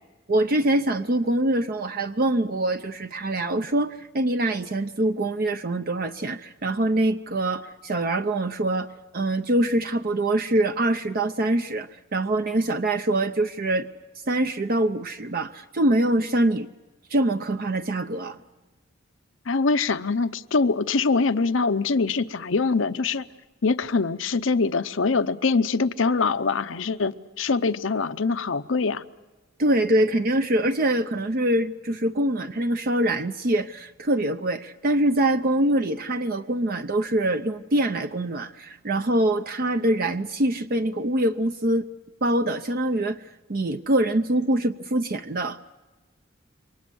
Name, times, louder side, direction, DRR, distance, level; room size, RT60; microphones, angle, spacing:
voice 1, 0.3-13.9 14.3-16.7 17.1-18.4 29.6-41.9 42.2-43.2 43.5-45.6, right 1 dB, 50° right, 0.7 m, -24 dB
voice 2, 19.5-23.3 23.6-29.0, left 4 dB, 80° left, 0.7 m, -23 dB
28.0 x 24.0 x 6.2 m
head